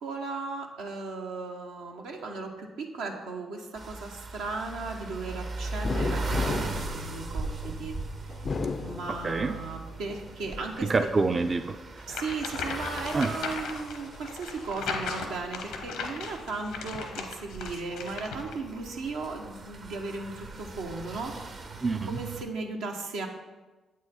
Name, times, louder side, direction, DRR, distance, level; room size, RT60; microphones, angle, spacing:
voice 1, 0.0-8.0 8.8-10.9 12.1-21.3 22.1-23.3, right 3 dB, 80° right, 1 dB, 0.9 m, -36 dB
sound 1, 3.8-22.4, right 3 dB, 55° right, 0.8 m, -39 dB
sound 2, 5.8-7.8 8.3-9.6 10.1-11.0, left 4 dB, 45° left, 0.3 m, -34 dB
voice 2, 9.1-9.5 10.8-12.0 13.1-13.3 21.8-22.2, right 3 dB, 40° right, 7 dB, 0.4 m, -27 dB
sound 3, 12.1-18.5, left 5 dB, 85° left, 0.8 m, -37 dB
7.9 x 4.7 x 4.2 m, 1.2 s
hypercardioid pair, 50°, 0 cm